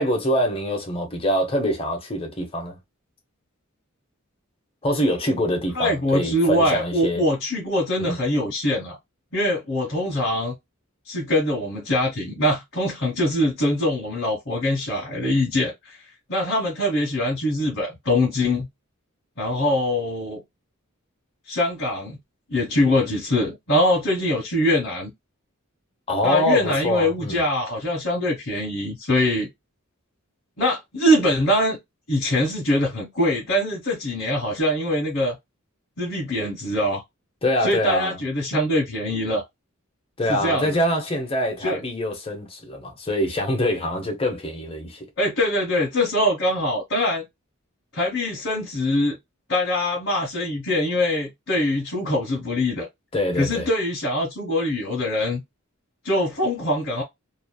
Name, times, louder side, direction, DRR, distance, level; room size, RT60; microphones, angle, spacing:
voice 1, 0.0-2.8 4.8-7.2 8.0-8.2 26.1-27.4 37.4-38.2 40.2-45.1 53.1-53.7, equal, 25° left, 0.9 m, -24 dB
voice 2, 5.7-9.0 9.3-10.5 11.1-16.0 16.3-18.7 19.4-20.4 21.5-22.2 22.5-25.1 26.2-29.5 30.6-31.8 32.1-35.3 36.0-37.0 37.6-39.4 40.3-40.8 41.6-41.8 45.2-47.2 47.9-49.2 49.5-52.9 53.4-55.4 56.0-57.0, left 1 dB, 55° left, 1.3 m, -23 dB
3.1 x 2.3 x 2.3 m
head